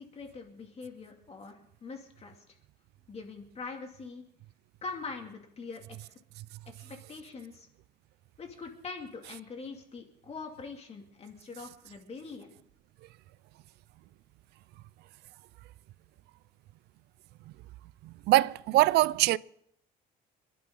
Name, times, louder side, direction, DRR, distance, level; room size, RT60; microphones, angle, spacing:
voice 1, 0.0-2.6 3.1-4.2 4.8-6.2 6.8-7.7 8.4-12.5, left 4 dB, 40° left, 2.6 m, -43 dB
voice 2, 18.3-19.4, right 17 dB, 75° right, 0.5 m, -22 dB
27.0 x 11.0 x 3.9 m
cardioid pair, 110°, 17 cm